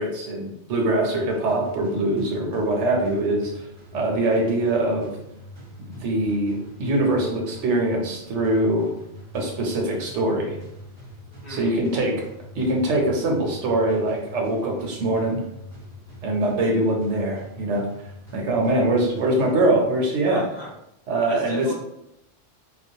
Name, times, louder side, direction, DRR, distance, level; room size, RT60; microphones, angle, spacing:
voice 1, 0.0-3.7 3.9-5.1 5.9-8.9 9.3-10.6 11.5-12.2 12.5-15.4 16.2-17.9 18.3-20.4 21.1-21.7, right 1 dB, 75° right, 1 dB, 0.9 m, -23 dB
sound 1, 1.1-20.1, equal, 15° left, 0.8 m, -43 dB
voice 2, 18.6-19.0 20.3-20.7 21.3-21.7, left 1 dB, 55° left, -6 dB, 0.5 m, -36 dB
2.3 x 2.1 x 2.7 m, 0.81 s
omnidirectional pair, 1.2 m